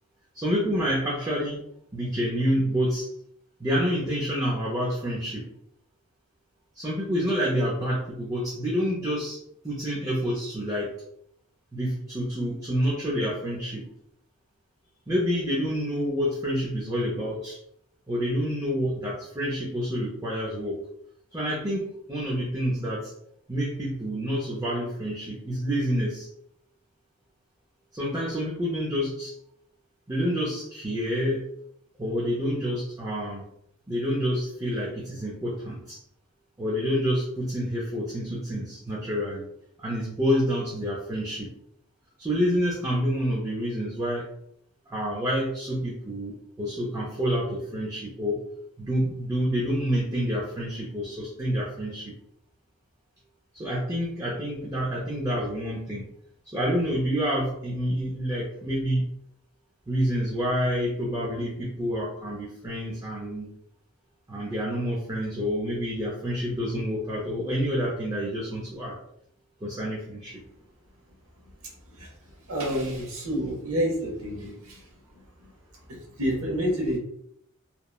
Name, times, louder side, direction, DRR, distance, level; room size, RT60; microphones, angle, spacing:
voice 1, 0.3-1.6 1.9-3.1 3.6-5.5 6.7-9.4 9.6-10.9 11.7-13.9 15.1-17.6 18.1-20.8 21.3-23.1 23.5-26.3 27.9-29.3 30.1-31.5 32.0-33.5 33.9-36.0 36.6-39.5 39.8-41.5 42.2-44.3 44.9-48.4 48.8-52.2 53.5-56.1 56.5-59.1 59.9-63.6 64.3-69.0 69.6-70.4, equal, 15° right, -5 dB, 0.5 m, -28 dB
voice 2, 71.6-75.5 75.9-77.0, equal, 80° right, -2 dB, 0.9 m, -30 dB
2.9 x 2.1 x 2.2 m, 0.73 s
head